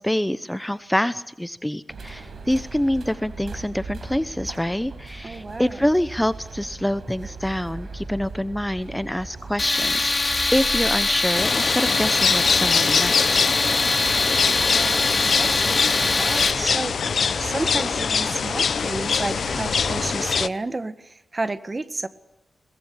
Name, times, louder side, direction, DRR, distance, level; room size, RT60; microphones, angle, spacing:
voice 1, 0.0-13.4, left 1 dB, 5° left, 14 dB, 1.0 m, -26 dB
sound 1, 1.9-20.1, right 3 dB, 70° right, 5.2 m, -39 dB
voice 2, 5.2-5.8 14.6-22.1, right 2 dB, 35° right, 12 dB, 1.8 m, -31 dB
Tools, 9.6-16.5, left 3 dB, 35° left, 3.6 m, -22 dB
sound 2, 11.3-20.5, left 6 dB, 75° left, 0.9 m, -24 dB
22.5 x 19.5 x 8.8 m, 0.84 s
cardioid pair, 70°, 0 cm